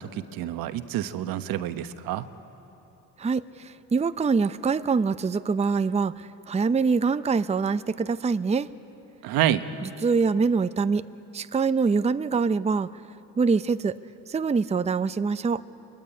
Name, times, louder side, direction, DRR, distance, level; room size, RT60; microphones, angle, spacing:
voice 1, 0.0-2.3 9.2-9.6, right 12 dB, 75° right, 10 dB, 1.2 m, -28 dB
voice 2, 3.2-8.7 9.8-11.0 11.3-12.9 13.4-14.0 14.3-15.6, right 5 dB, 20° right, 12 dB, 0.6 m, -24 dB
24.0 x 22.0 x 10.0 m, 2.9 s
supercardioid pair, 80°, 35 cm